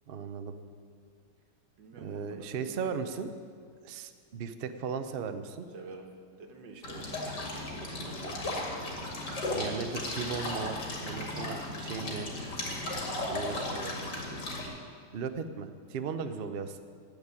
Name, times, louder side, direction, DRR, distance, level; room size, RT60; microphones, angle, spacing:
voice 1, 0.1-0.5 2.0-3.3 3.8-5.7 9.5-10.8 11.0-12.3 13.3-13.6 15.1-16.8, right 6 dB, 65° right, 9 dB, 0.5 m, -36 dB
voice 2, 1.8-2.8 5.7-6.1 6.4-8.6 12.7-12.9 13.2-14.4 16.0-16.1, right 3 dB, 85° right, 3 dB, 2.0 m, -48 dB
sound 1, 6.8-14.7, left 2 dB, 75° left, 2.8 m, -35 dB
15.5 x 5.2 x 9.5 m, 2.2 s
omnidirectional pair, 1.9 m